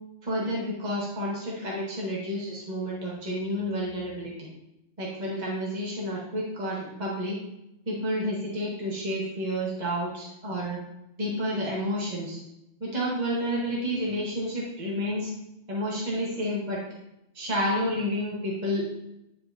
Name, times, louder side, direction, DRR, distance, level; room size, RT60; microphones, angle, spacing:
voice 1, 0.2-4.5 5.0-7.4 7.9-10.8 11.2-12.4 12.8-15.3 15.7-16.8 17.3-18.9, equal, 35° right, -5 dB, 1.7 m, -30 dB
9.6 x 5.1 x 2.8 m, 0.84 s
omnidirectional pair, 1.2 m